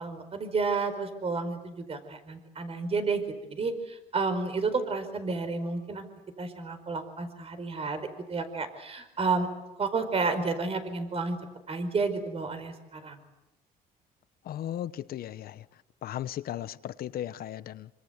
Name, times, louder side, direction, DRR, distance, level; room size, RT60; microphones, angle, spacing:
voice 1, 0.0-3.2 3.5-6.1 6.4-9.5 9.8-11.4 11.7-13.2, right 4 dB, 35° right, 4.8 m, -31 dB
voice 2, 14.4-15.6 16.0-17.9, left 11 dB, 65° left, 1.1 m, -36 dB
27.0 x 25.5 x 8.2 m
cardioid pair, 110°, 17 cm